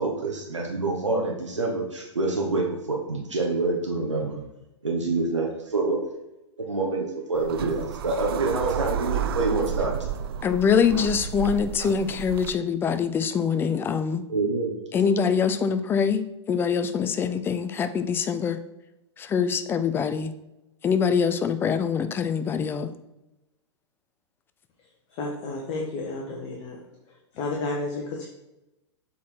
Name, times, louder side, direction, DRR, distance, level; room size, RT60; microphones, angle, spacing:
voice 1, 0.0-4.4 4.8-6.1 6.6-9.9 14.3-14.8, right 3 dB, 80° right, -1 dB, 1.2 m, -27 dB
sound 1, 7.3-12.5, right 9 dB, 50° right, 0.4 m, -31 dB
voice 2, 10.4-14.2 14.9-16.2 16.5-18.6 19.2-20.3 20.8-22.9, left 6 dB, 15° left, 9 dB, 0.5 m, -24 dB
voice 3, 25.1-26.8 27.3-28.3, left 2 dB, 35° left, -1 dB, 1.2 m, -31 dB
7.1 x 4.2 x 4.5 m, 0.92 s
figure-of-eight pair, 105°, 15 cm